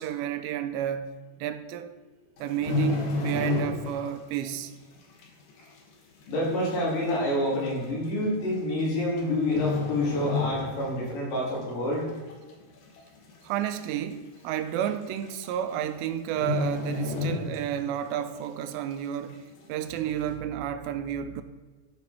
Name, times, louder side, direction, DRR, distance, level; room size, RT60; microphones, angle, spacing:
voice 1, 0.0-1.9 2.4-4.7 13.4-21.4, right 10 dB, 85° right, 2.7 m, -31 dB
sound 1, 2.4-4.1 4.4-4.7 5.2-5.3 6.2-6.3 6.5-6.6 7.5-7.7 8.8-9.2 9.5-11.0 11.4-11.6 12.1-12.6 13.0-13.1 13.3-13.4 13.8-13.9 14.9-15.0 15.2-15.5 15.8-15.9 16.3-18.0 18.3-18.4, left 4 dB, 65° left, 2.1 m, -30 dB
voice 2, 6.3-12.1, left 1 dB, 80° left, 5.2 m, -27 dB
12.5 x 5.2 x 4.3 m
omnidirectional pair, 5.0 m